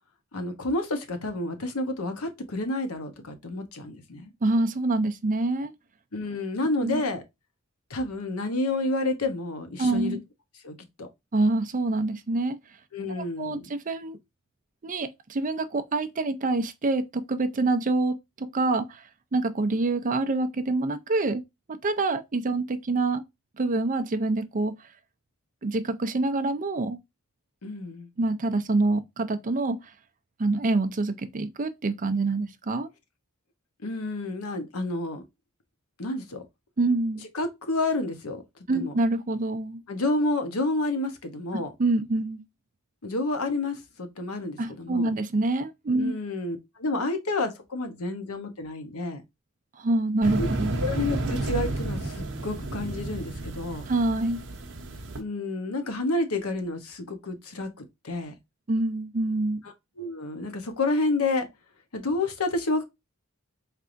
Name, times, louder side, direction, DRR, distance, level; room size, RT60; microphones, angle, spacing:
voice 1, 0.3-4.3 6.1-7.2 7.9-10.2 10.6-11.1 12.9-13.6 27.6-28.1 33.8-35.2 36.0-36.4 37.3-38.4 38.7-38.9 39.9-41.7 43.0-45.1 46.0-49.2 50.4-50.5 50.8-53.9 55.2-58.3 60.0-61.5 61.9-62.8, left 2 dB, 90° left, 1.0 m, -29 dB
voice 2, 4.4-5.7 6.8-7.0 9.8-10.2 11.3-12.6 13.1-14.2 14.8-21.4 21.7-23.2 23.6-24.7 25.6-27.0 28.2-29.8 30.4-32.9 36.8-37.2 38.7-39.8 41.8-42.4 44.6-46.2 49.8-50.8 53.9-54.4 58.7-59.6, right 2 dB, 40° right, 0.5 m, -26 dB
sound 1, 50.2-55.2, right 2 dB, 60° right, 0.9 m, -31 dB
4.5 x 3.3 x 2.5 m
head